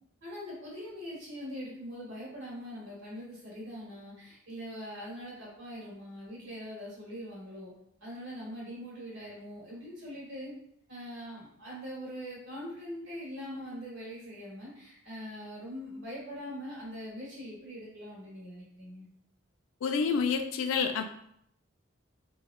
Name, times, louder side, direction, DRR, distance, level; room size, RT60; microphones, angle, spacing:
voice 1, 0.2-7.7 8.0-10.5 10.9-19.1, equal, 65° right, -6 dB, 1.5 m, -42 dB
voice 2, 19.8-21.0, left 5 dB, 80° left, 7 dB, 0.3 m, -28 dB
3.4 x 2.2 x 2.3 m, 0.71 s
head